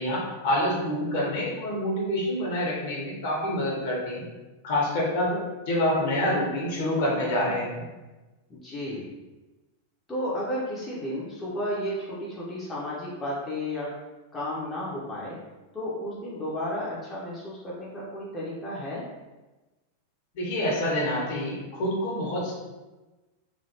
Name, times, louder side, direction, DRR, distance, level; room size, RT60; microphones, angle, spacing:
voice 1, 0.0-4.2 4.6-5.4 5.7-7.8 20.3-22.5, left 1 dB, 50° left, -3 dB, 1.1 m, -27 dB
voice 2, 8.5-9.1 10.1-13.9 14.3-15.4 15.7-19.0, left 1 dB, 15° left, -7 dB, 0.7 m, -33 dB
3.2 x 2.7 x 2.7 m, 1.1 s
figure-of-eight pair, 90°, 0 cm